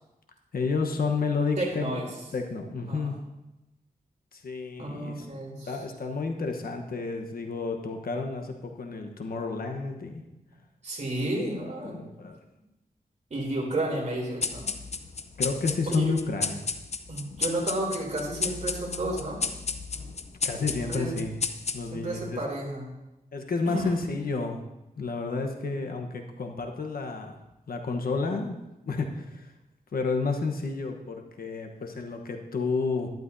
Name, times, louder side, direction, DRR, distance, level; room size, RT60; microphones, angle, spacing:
voice 1, 0.5-3.2 4.3-5.3 5.7-10.2 11.8-12.4 15.4-16.6 20.4-21.4 21.7-22.4 23.3-24.6 25.0-27.4 27.7-28.6 28.8-29.5 29.9-33.1, left 4 dB, 70° left, 4 dB, 1.1 m, -31 dB
voice 2, 1.6-2.1 2.9-3.2 4.8-5.7 10.8-12.0 13.3-14.7 15.9-16.1 17.1-19.4 20.6-21.2 21.9-22.9 23.7-23.9, right 1 dB, 50° right, -2 dB, 3.2 m, -32 dB
sound 1, 14.4-22.2, left 5 dB, 45° left, 0.6 m, -33 dB
12.0 x 11.5 x 2.7 m, 0.96 s
wide cardioid pair, 90°, 15 cm